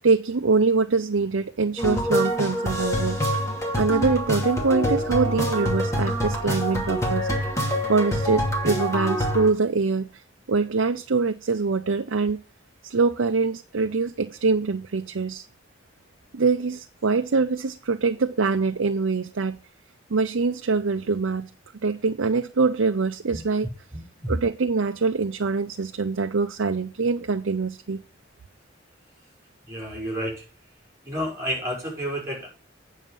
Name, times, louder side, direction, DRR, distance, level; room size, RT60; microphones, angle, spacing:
voice 1, 0.0-3.2 3.8-7.3 7.9-10.2 10.5-12.4 12.8-15.5 16.3-19.6 20.1-21.5 21.8-23.7 24.3-28.0, right 4 dB, 80° right, 0.6 m, -24 dB
sound 1, 1.8-9.5, equal, 15° left, 2.7 m, -25 dB
voice 2, 23.9-24.3 29.7-30.4 31.0-32.5, equal, 15° right, 4.9 m, -30 dB
9.2 x 6.5 x 5.4 m
head